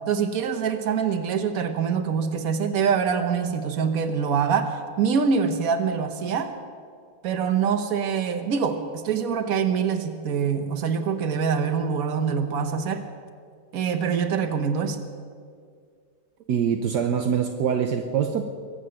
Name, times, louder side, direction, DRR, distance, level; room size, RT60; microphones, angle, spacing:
voice 1, 0.1-6.5 7.2-13.1 13.7-15.0, right 6 dB, 55° right, 7 dB, 1.5 m, -25 dB
voice 2, 16.5-18.5, right 7 dB, 70° right, 4 dB, 1.4 m, -24 dB
22.5 x 8.3 x 7.6 m, 2.1 s
omnidirectional pair, 1.9 m